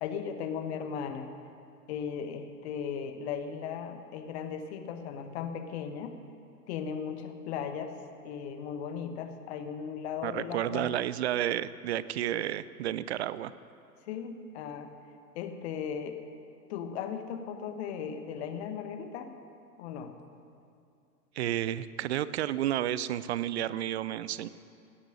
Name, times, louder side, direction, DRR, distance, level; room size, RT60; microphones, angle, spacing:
voice 1, 0.0-1.3 1.9-6.2 6.7-7.9 8.2-11.0 14.1-14.9 15.3-16.2 16.7-19.3 19.8-20.1, left 7 dB, 40° left, 8 dB, 1.3 m, -37 dB
voice 2, 10.2-13.5 21.4-24.5, right 12 dB, 45° right, 16 dB, 0.5 m, -31 dB
17.0 x 9.8 x 6.6 m, 2.5 s
figure-of-eight pair, 95°, 47 cm